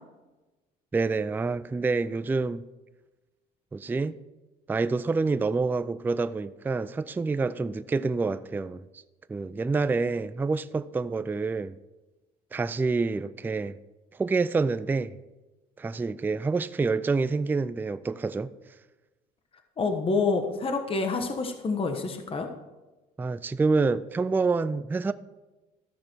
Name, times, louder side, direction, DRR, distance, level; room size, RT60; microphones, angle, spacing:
voice 1, 0.9-2.6 3.7-4.2 4.7-8.8 9.3-11.8 12.5-13.8 14.1-15.1 15.8-18.5 23.2-25.1, right 4 dB, 10° right, 0.3 m, -27 dB
voice 2, 19.8-22.5, left 4 dB, 35° left, 1.2 m, -27 dB
14.0 x 6.2 x 4.5 m
cardioid pair, 110°, 17 cm